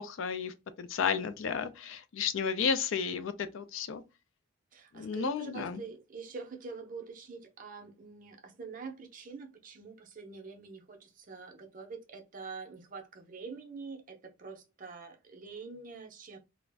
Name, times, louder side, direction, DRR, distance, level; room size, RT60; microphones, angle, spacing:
voice 1, 0.0-4.0 4.9-5.8, left 6 dB, 65° left, 0.3 m, -33 dB
voice 2, 4.7-16.4, right 4 dB, 40° right, 0.5 m, -45 dB
2.4 x 2.0 x 3.3 m
head